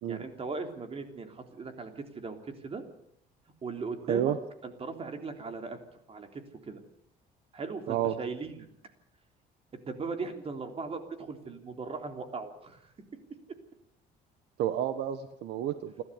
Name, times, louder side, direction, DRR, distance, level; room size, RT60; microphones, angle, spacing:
voice 1, 0.1-2.8 3.6-4.3 4.6-5.8 6.1-6.8 7.5-8.7 9.9-12.9, right 4 dB, 35° right, 6 dB, 3.5 m, -38 dB
voice 2, 14.6-16.0, right 10 dB, 80° right, 10 dB, 1.4 m, -30 dB
29.0 x 13.0 x 8.3 m, 0.72 s
cardioid pair, 110°, 17 cm